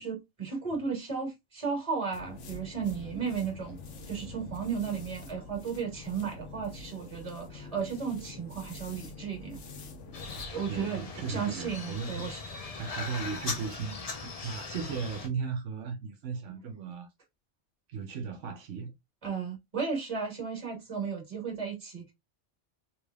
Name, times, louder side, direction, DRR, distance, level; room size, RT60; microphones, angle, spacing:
voice 1, 0.0-3.8 4.1-9.6 10.5-11.0 11.3-12.4 19.2-22.1, right 6 dB, 30° right, 1.7 m, -34 dB
sound 1, 2.1-10.5, left 3 dB, 90° left, 1.1 m, -46 dB
sound 2, 10.1-15.3, left 4 dB, 40° left, 0.7 m, -39 dB
voice 2, 10.7-12.3 12.7-14.2 14.4-17.1 17.9-18.9, right 5 dB, 85° right, 1.1 m, -36 dB
3.3 x 3.3 x 2.3 m
omnidirectional pair, 1.2 m